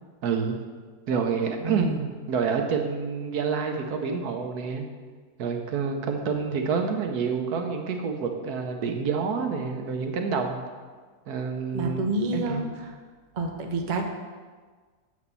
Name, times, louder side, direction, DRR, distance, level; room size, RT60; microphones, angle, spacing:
voice 1, 0.2-0.6 1.1-1.9 2.3-4.9 5.4-10.6 11.3-12.7, right 5 dB, 65° right, 4 dB, 1.3 m, -28 dB
voice 2, 1.6-2.1 11.7-13.0 13.3-14.0, right 2 dB, 45° right, 3 dB, 0.6 m, -29 dB
7.1 x 5.1 x 6.8 m, 1.5 s
omnidirectional pair, 1.8 m